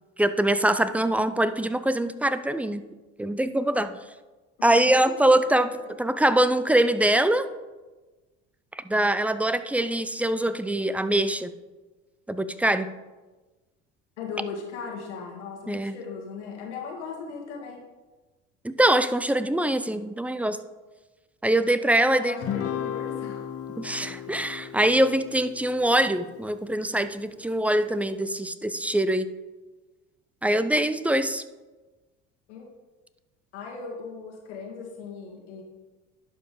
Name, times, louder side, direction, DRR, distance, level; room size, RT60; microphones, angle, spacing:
voice 1, 0.2-2.9 3.2-4.0 4.6-5.7 6.0-7.5 8.7-11.5 12.3-12.9 15.7-16.0 18.6-20.6 21.4-22.4 23.8-29.3 30.4-31.4, right 1 dB, 5° right, 12 dB, 0.4 m, -23 dB
voice 2, 4.6-5.1 5.8-5.9 14.2-17.8 21.8-23.5 24.3-24.4 32.5-32.7 33.5-35.6, left 5 dB, 85° left, 0 dB, 1.9 m, -38 dB
Guitar, 22.4-27.0, left 10 dB, 45° left, 0.8 m, -35 dB
11.5 x 5.1 x 3.8 m, 1.2 s
hypercardioid pair, 75°, 33 cm